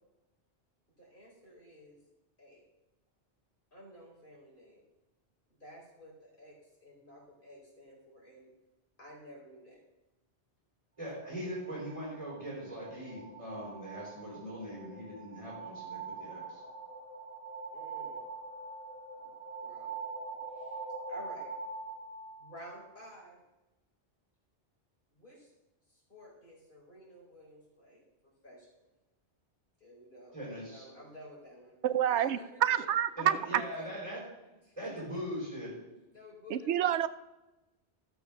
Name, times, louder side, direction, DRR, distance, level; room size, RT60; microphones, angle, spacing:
voice 1, 1.0-2.0 2.4-2.6 3.7-4.8 5.6-6.5 6.8-8.5 9.0-9.8 17.7-18.2 19.2-19.3 19.6-20.0 20.5-20.8 21.1-21.5 22.4-23.4 25.1-25.5 25.9-28.0 28.4-28.7 29.8-31.7 32.1-32.9 33.4-33.9 34.6-35.0 36.1-36.8, equal, 45° left, -4 dB, 4.6 m, -52 dB
voice 2, 11.0-16.6 30.3-30.8 33.2-34.2 34.8-35.7, equal, 25° right, -5 dB, 4.4 m, -41 dB
sound 1, 11.6-23.2, right 4 dB, 10° right, 2.4 m, -44 dB
voice 3, 31.8-33.6 36.5-37.1, right 10 dB, 75° right, 13 dB, 0.9 m, -28 dB
13.0 x 6.9 x 6.0 m, 1.0 s
omnidirectional pair, 1.2 m